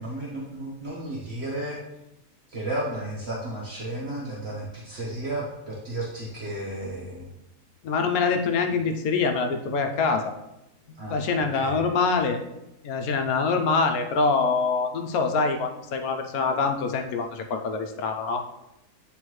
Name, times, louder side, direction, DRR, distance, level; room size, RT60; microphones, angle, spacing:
voice 1, 0.0-1.8 2.5-7.3 11.0-11.2 11.5-11.8, right 1 dB, 50° right, -5 dB, 1.2 m, -33 dB
voice 2, 7.8-10.3 11.1-12.4 12.8-18.4, left 4 dB, 80° left, 5 dB, 1.1 m, -25 dB
9.0 x 3.5 x 3.1 m, 0.89 s
omnidirectional pair, 1.5 m